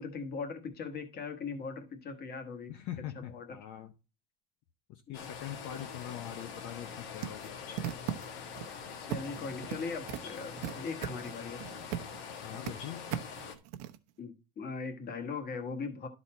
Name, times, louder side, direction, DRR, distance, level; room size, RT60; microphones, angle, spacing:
voice 1, 0.0-2.7 3.2-3.5 5.1-5.3 9.0-11.6 14.2-16.1, left 4 dB, 30° left, 1.2 m, -40 dB
voice 2, 2.7-3.9 4.9-7.5 12.4-13.1, left 11 dB, 50° left, 0.7 m, -43 dB
sound 1, 5.1-13.5, left 6 dB, 70° left, 1.6 m, -44 dB
sound 2, 7.2-8.6 9.1-9.8 10.1-12.2 12.4-12.7 13.1-14.0, right 12 dB, 70° right, 0.9 m, -37 dB
12.0 x 4.2 x 4.2 m
cardioid pair, 160°, 34 cm